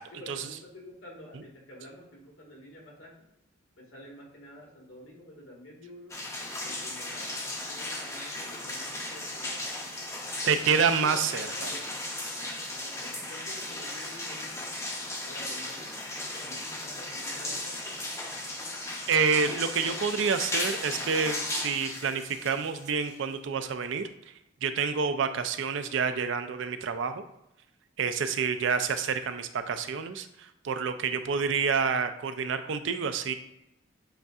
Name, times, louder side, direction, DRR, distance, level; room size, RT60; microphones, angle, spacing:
voice 1, 0.1-3.2 3.7-6.1 6.6-7.4 7.7-9.8 10.4-12.0 12.8-14.7 15.2-16.0 16.3-18.0, equal, 85° left, -3 dB, 1.6 m, -49 dB
sound 1, 6.1-23.3, left 1 dB, 15° left, 0.6 m, -36 dB
voice 2, 10.5-11.7 19.1-24.1 24.6-27.2 28.0-33.3, right 6 dB, 65° right, 9 dB, 0.4 m, -28 dB
7.7 x 2.7 x 2.4 m, 0.85 s
head